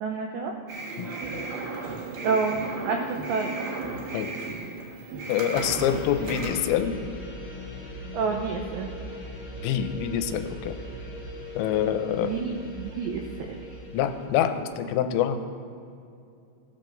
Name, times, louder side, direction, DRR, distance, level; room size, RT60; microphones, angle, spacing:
voice 1, 0.0-0.6 2.2-2.6 2.8-3.5 8.1-8.9 11.9-13.2 13.5-13.6, right 5 dB, 80° right, 2 dB, 2.5 m, -29 dB
sound 1, 0.7-6.5, right 3 dB, 60° right, 2.9 m, -35 dB
voice 2, 5.3-6.9 9.6-10.7 11.6-12.4 13.9-15.5, left 9 dB, 85° left, 8 dB, 3.2 m, -26 dB
sound 2, 5.5-14.3, left 1 dB, 50° left, 1.5 m, -39 dB
19.0 x 6.7 x 3.9 m, 2.5 s
omnidirectional pair, 5.9 m